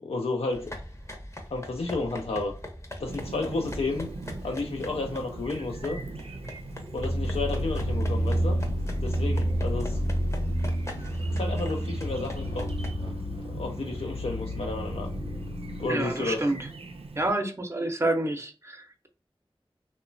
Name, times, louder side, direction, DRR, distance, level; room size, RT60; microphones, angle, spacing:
voice 1, 0.0-0.7 1.5-2.5 3.0-4.1 4.4-6.0 6.9-8.6 9.0-10.0 11.3-12.7 13.4-15.1 15.8-16.5, left 3 dB, 85° left, 0.4 m, -31 dB
sound 1, 0.5-12.9, left 1 dB, 30° left, 0.6 m, -41 dB
Chirp tweet, 3.1-17.3, right 3 dB, 85° right, 0.4 m, -42 dB
sound 2, 7.0-15.9, equal, 60° left, 0.8 m, -29 dB
voice 2, 15.9-16.6 17.2-19.1, right 1 dB, 30° right, 0.5 m, -28 dB
2.9 x 2.1 x 2.5 m
wide cardioid pair, 40°, 10 cm